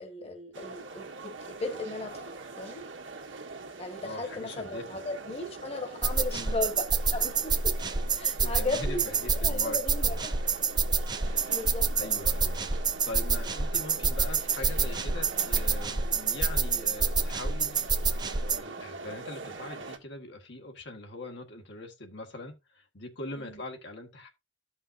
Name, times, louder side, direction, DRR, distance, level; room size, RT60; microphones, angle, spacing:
voice 1, 0.0-2.8 3.8-7.8 8.1-9.0 9.3-10.4 11.3-12.2 23.3-23.6, left 2 dB, 35° left, 1.5 m, -36 dB
sound 1, 0.5-20.0, right 3 dB, 85° right, 1.6 m, -43 dB
voice 2, 4.0-4.8 6.3-6.6 8.4-10.2 11.9-12.7 13.0-17.9 18.5-24.3, left 2 dB, 65° left, 1.7 m, -42 dB
sound 2, 6.0-18.6, right 4 dB, 25° right, 0.6 m, -28 dB
14.0 x 5.5 x 2.6 m
head